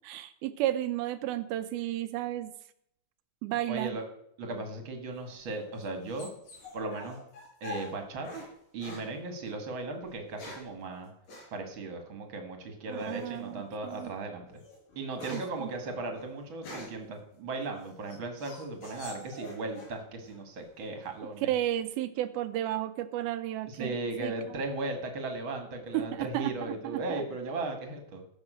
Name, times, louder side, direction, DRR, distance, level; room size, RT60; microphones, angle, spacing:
voice 1, 0.0-2.5 3.4-4.0 12.9-14.1 15.3-15.7 21.5-24.0 24.2-24.6 25.9-27.2, right 13 dB, 80° right, 12 dB, 2.3 m, -33 dB
voice 2, 3.7-4.0 4.4-6.3 6.7-7.2 7.6-8.4 8.7-11.1 11.5-14.5 14.9-21.5 23.7-28.2, right 2 dB, 45° right, 5 dB, 1.7 m, -37 dB
sound 1, 5.2-8.5 8.8-9.1 10.0-10.8 11.3-11.5 13.0-13.4 13.9-14.1 14.5-17.1 17.6-20.0 20.2-20.9, left 2 dB, 85° left, 7.5 m, -45 dB
16.0 x 6.4 x 6.3 m, 0.74 s
omnidirectional pair, 4.7 m